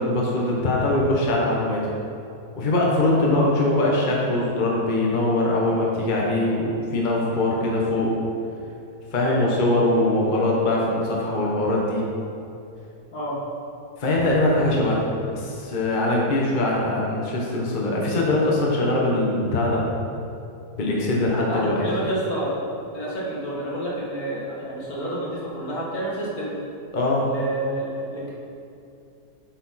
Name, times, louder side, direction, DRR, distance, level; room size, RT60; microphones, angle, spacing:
voice 1, 0.0-1.8 2.6-8.1 9.1-12.0 14.0-15.0 15.3-19.8 20.7-21.8 26.9-27.3, left 2 dB, 35° left, -3 dB, 1.1 m, -22 dB
voice 2, 21.5-22.5 22.9-26.6 27.3-28.3, right 1 dB, 70° left, -6 dB, 2.3 m, -29 dB
7.8 x 6.9 x 4.2 m, 2.6 s
omnidirectional pair, 1.6 m